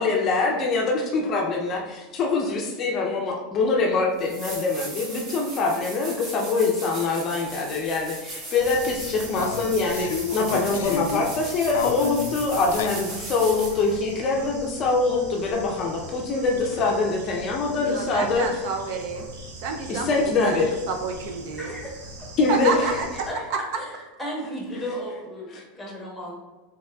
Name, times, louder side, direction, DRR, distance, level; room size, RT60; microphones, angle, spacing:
voice 1, 0.0-18.5 19.9-20.7 22.4-22.7 25.5-25.6, left 3 dB, 30° left, 0 dB, 0.5 m, -24 dB
sound 1, 3.7-3.8 4.2-13.9 16.7-16.8, right 2 dB, 30° right, 1.0 m, -38 dB
sound 2, 7.5-7.6 7.9-8.0 9.4-11.4 11.7-13.1, left 7 dB, 85° left, 0.3 m, -31 dB
Bird / Insect, 8.6-23.3, right 1 dB, 80° right, 0.9 m, -42 dB
voice 2, 17.7-19.3 19.6-21.7 22.5-23.8, right 4 dB, 55° right, 4 dB, 0.4 m, -30 dB
voice 3, 21.5-22.3 23.3-23.4 23.8-23.9 24.2-26.3, equal, 5° left, -3 dB, 1.0 m, -34 dB
5.5 x 3.5 x 2.3 m, 1.2 s
supercardioid pair, 165°, 0 cm